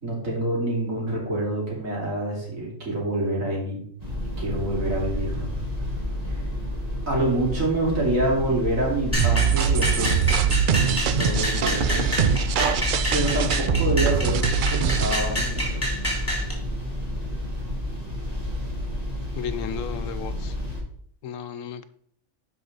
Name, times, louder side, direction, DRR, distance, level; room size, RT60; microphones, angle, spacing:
voice 1, 0.0-3.8 4.4-5.5 6.2-6.4 7.1-10.1 11.2-12.1 13.1-15.8, right 1 dB, 80° right, -3 dB, 3.2 m, -26 dB
sound 1, 4.0-20.8, left 1 dB, 30° right, 2.2 m, -30 dB
sound 2, 9.1-16.5, equal, 10° left, 2.7 m, -28 dB
sound 3, 9.2-15.2, right 8 dB, 65° right, 0.5 m, -23 dB
voice 2, 19.3-20.5 21.2-21.8, left 8 dB, 80° left, 11 dB, 1.0 m, -34 dB
11.5 x 5.0 x 4.0 m, 0.63 s
omnidirectional pair, 1.4 m